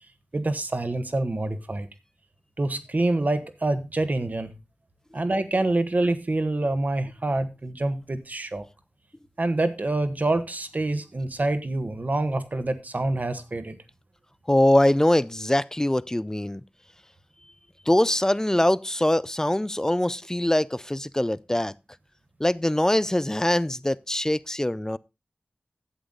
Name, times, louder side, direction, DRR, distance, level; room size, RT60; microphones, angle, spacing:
voice 1, 0.3-1.9 2.6-4.5 5.1-8.6 9.4-13.8, right 2 dB, 50° right, 1.4 m, -26 dB
voice 2, 14.5-16.6 17.9-21.7 22.4-25.0, left 1 dB, 15° left, 0.5 m, -23 dB
11.5 x 8.1 x 3.8 m
wide cardioid pair, 50°, 4 cm